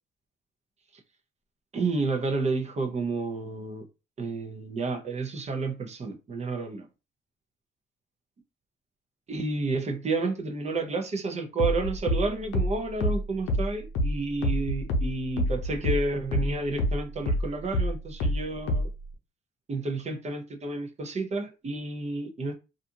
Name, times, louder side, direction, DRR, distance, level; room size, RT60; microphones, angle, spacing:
voice 1, 1.7-3.9 4.2-6.8 9.3-18.9 19.7-22.5, right 3 dB, 35° right, 0.7 m, -30 dB
sound 1, 11.6-16.5 16.8-19.0, equal, 85° left, 0.6 m, -26 dB
2.5 x 2.3 x 2.7 m
cardioid pair, 90°, 20 cm